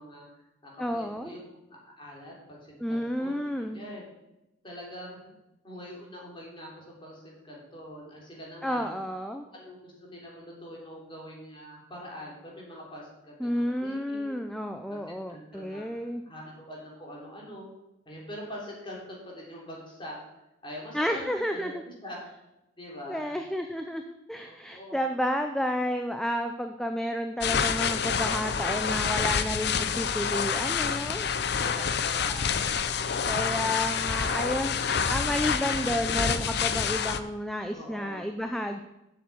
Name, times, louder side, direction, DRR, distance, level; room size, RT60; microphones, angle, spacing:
voice 1, 0.0-1.6 2.0-4.0 4.6-5.3 5.6-8.9 9.5-14.5 14.9-15.0 15.3-17.7 18.0-20.2 20.6-22.2 22.8-23.4 24.4-25.0 29.0-29.4 31.6-32.7 37.7-38.2, equal, 25° left, -3 dB, 3.3 m, -44 dB
voice 2, 0.8-1.3 2.8-3.8 8.6-9.5 13.4-16.2 20.9-21.8 23.1-31.3 33.3-38.8, equal, ahead, 5 dB, 0.5 m, -31 dB
sound 1, 27.4-37.2, left 6 dB, 55° left, 0.6 m, -28 dB
7.9 x 7.0 x 7.7 m, 0.93 s
head